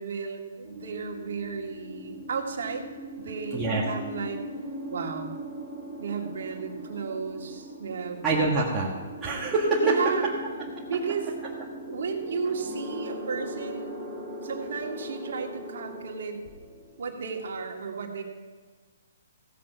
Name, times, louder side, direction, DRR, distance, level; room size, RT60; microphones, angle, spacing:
voice 1, 0.0-2.9 3.2-4.4 4.9-5.4 6.0-8.2 9.8-10.2 10.8-11.3 11.9-14.1 14.4-16.4 17.0-18.2, right 5 dB, 65° right, 1 dB, 1.8 m, -33 dB
sound 1, 0.6-17.5, right 1 dB, 10° left, 4.2 m, -40 dB
voice 2, 3.5-3.8 8.2-8.9 9.2-9.9, right 3 dB, 10° right, -7 dB, 1.5 m, -24 dB
16.0 x 7.3 x 5.7 m, 1.4 s
hypercardioid pair, 160°, 0 cm